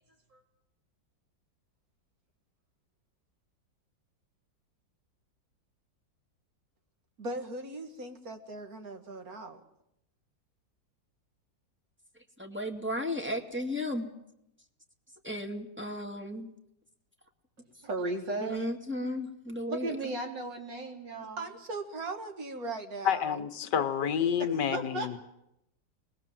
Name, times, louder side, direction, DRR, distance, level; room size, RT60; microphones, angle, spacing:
voice 1, 7.2-9.6 21.4-23.4, right 2 dB, 50° right, 6 dB, 2.5 m, -39 dB
voice 2, 12.4-14.1 15.2-16.5 18.4-20.0, left 1 dB, 5° right, 2 dB, 2.3 m, -34 dB
voice 3, 17.8-18.6 19.7-21.5 24.7-25.2, right 2 dB, 70° right, 2 dB, 4.1 m, -35 dB
voice 4, 23.0-25.2, left 8 dB, 65° left, 9 dB, 1.8 m, -29 dB
24.5 x 20.5 x 7.7 m, 0.80 s
omnidirectional pair, 2.0 m